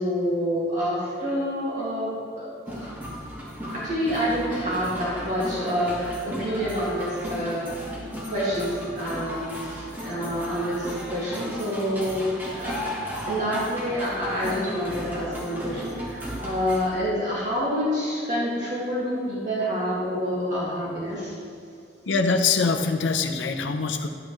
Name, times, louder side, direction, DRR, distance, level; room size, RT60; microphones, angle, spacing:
voice 1, 0.0-3.0 3.6-21.3, equal, 45° right, -8 dB, 2.1 m, -28 dB
sound 1, 2.7-16.9, equal, 10° right, 1.3 m, -35 dB
voice 2, 22.1-24.1, left 4 dB, 85° left, 5 dB, 0.6 m, -23 dB
11.0 x 8.8 x 3.1 m, 2.5 s
head